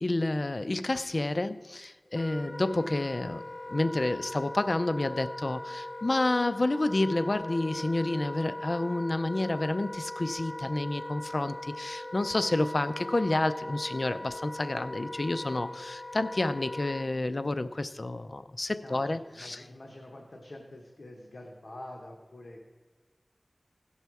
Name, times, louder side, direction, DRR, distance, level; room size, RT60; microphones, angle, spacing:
voice 1, 0.0-3.4 3.7-19.6, left 2 dB, 60° left, 0.5 m, -29 dB
Wind instrument woodwind instrument, 2.1-17.1, left 1 dB, 30° left, 1.0 m, -40 dB
voice 2, 18.8-22.6, left 1 dB, 85° left, 1.0 m, -46 dB
16.5 x 5.6 x 4.6 m
wide cardioid pair, 45°, 0 cm